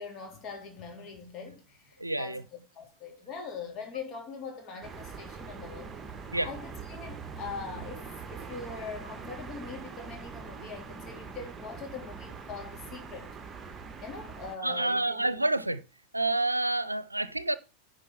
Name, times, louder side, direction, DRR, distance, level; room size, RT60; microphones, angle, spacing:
voice 1, 0.0-2.4 2.7-5.9 6.4-13.3 14.0-15.3, left 4 dB, 35° left, 3.6 m, -42 dB
voice 2, 2.0-2.4 6.3-6.5 14.6-15.8 16.1-17.6, right 2 dB, 85° right, 0.6 m, -28 dB
sound 1, 4.8-14.6, right 5 dB, 20° right, 1.4 m, -43 dB
10.0 x 5.1 x 5.7 m
figure-of-eight pair, 85°, 0 cm